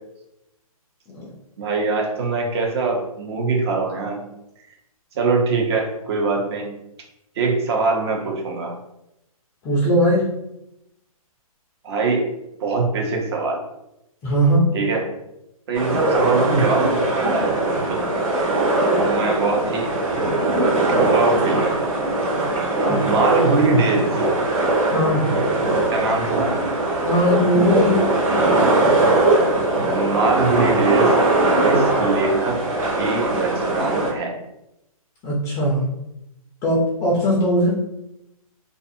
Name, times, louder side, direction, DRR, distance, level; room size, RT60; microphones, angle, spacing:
voice 1, 1.6-4.3 5.1-6.7 7.4-8.8 11.8-12.3 12.6-13.6 14.7-15.1 15.7-17.6 17.9-18.0 18.9-19.9 21.1-21.9 22.9-24.2 25.9-26.6 29.9-31.1 31.6-32.6 33.0-34.4, right 3 dB, 45° right, 0 dB, 0.7 m, -22 dB
voice 2, 9.6-10.3 14.2-14.7 22.8-23.0 24.9-25.3 27.0-28.0 35.2-35.9 36.6-37.8, equal, 15° left, -4 dB, 0.4 m, -19 dB
sound 1, 15.7-34.1, right 2 dB, 65° right, 1.3 m, -20 dB
2.4 x 2.4 x 2.6 m, 0.85 s
hypercardioid pair, 145°, 19 cm